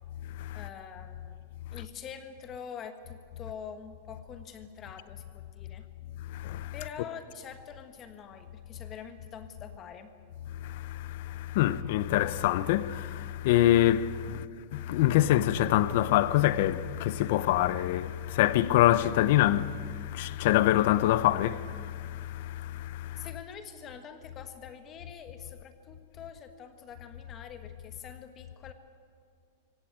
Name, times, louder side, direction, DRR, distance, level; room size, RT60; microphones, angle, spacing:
voice 1, 0.5-1.4 1.7-5.9 6.7-10.1 23.2-28.7, left 7 dB, 20° left, 1.3 m, -45 dB
voice 2, 6.3-6.7 10.6-14.4 14.7-23.3, left 13 dB, 45° left, 0.7 m, -26 dB
24.0 x 17.0 x 8.8 m
supercardioid pair, 175°, 0 cm